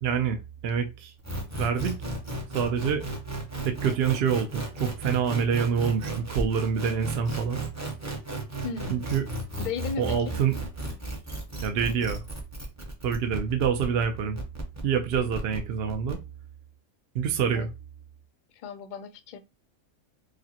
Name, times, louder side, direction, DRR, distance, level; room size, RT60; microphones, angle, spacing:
voice 1, 0.0-1.1 1.6-2.0 2.5-3.1 3.6-7.6 8.9-9.2 10.0-10.5 11.6-12.2 13.0-14.4 14.8-16.2 17.1-17.7, right 7 dB, 65° right, 0.7 m, -26 dB
sound 1, 1.2-16.1, right 2 dB, 15° right, 0.6 m, -35 dB
voice 2, 8.6-9.0 9.6-10.3 17.5-17.7 18.5-19.4, left 5 dB, 60° left, 0.5 m, -35 dB
4.9 x 2.1 x 2.7 m
omnidirectional pair, 1.3 m